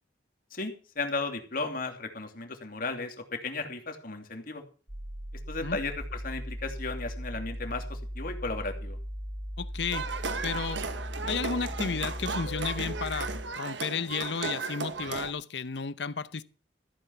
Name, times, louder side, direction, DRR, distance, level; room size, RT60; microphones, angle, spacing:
voice 1, 0.5-4.6 5.5-9.0, left 3 dB, 55° left, 2.8 m, -35 dB
sound 1, 4.9-13.4, equal, 45° right, 4.2 m, -38 dB
voice 2, 9.6-10.1 10.4-10.8 11.3-16.4, left 5 dB, 70° left, 0.8 m, -33 dB
sound 2, 9.9-15.3, right 4 dB, 90° right, 1.4 m, -35 dB
14.5 x 9.0 x 5.8 m
head